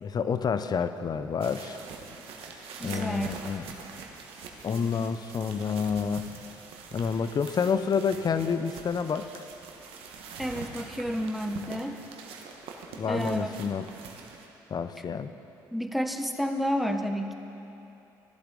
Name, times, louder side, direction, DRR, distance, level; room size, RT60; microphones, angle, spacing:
voice 1, 0.0-1.8 2.8-3.7 4.6-6.3 6.9-9.4 13.0-13.9 14.7-15.3, left 6 dB, 40° left, 11 dB, 0.6 m, -29 dB
sound 1, 1.4-14.5, right 5 dB, 65° right, 1.2 m, -44 dB
voice 2, 2.8-3.3 10.4-12.0 13.1-13.5 15.7-17.3, equal, ahead, 5 dB, 0.9 m, -30 dB
15.0 x 11.5 x 3.9 m, 2.9 s
hypercardioid pair, 55°, 10 cm